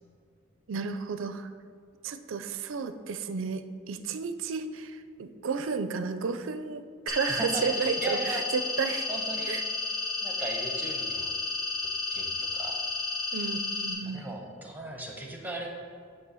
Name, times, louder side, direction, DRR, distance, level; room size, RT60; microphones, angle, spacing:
voice 1, 0.7-1.5 2.0-9.1 9.5-9.6 13.3-14.2, right 5 dB, 65° right, 10 dB, 0.4 m, -32 dB
sound 1, 7.1-13.9, left 3 dB, 80° left, 1.8 m, -32 dB
voice 2, 7.3-8.4 9.1-9.6 10.2-11.3 12.1-12.3 12.5-12.8 14.0-15.7, right 2 dB, 10° right, 0 dB, 0.9 m, -37 dB
8.6 x 3.2 x 6.1 m, 2.2 s
head